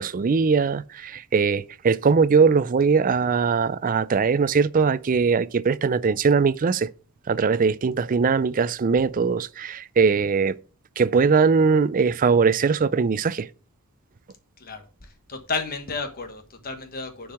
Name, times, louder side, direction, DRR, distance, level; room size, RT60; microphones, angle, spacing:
voice 1, 0.0-6.9 7.3-10.5 11.0-13.5, right 5 dB, 40° right, 0.4 m, -21 dB
voice 2, 14.6-17.3, left 4 dB, 40° left, 1.2 m, -33 dB
7.0 x 4.7 x 6.6 m
head